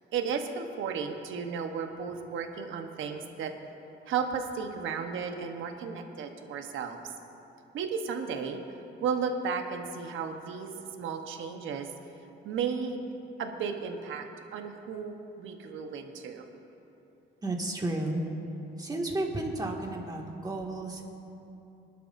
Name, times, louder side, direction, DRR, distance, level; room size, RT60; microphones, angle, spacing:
voice 1, 0.1-3.5 4.1-7.0 7.7-8.6 9.0-11.9 12.4-13.1 13.4-14.3 14.5-16.5, right 6 dB, 80° right, 5 dB, 1.1 m, -34 dB
voice 2, 17.4-18.2 18.8-21.1, right 2 dB, 20° right, -1 dB, 2.1 m, -32 dB
22.5 x 11.5 x 2.7 m, 2.9 s
cardioid pair, 90°, 20 cm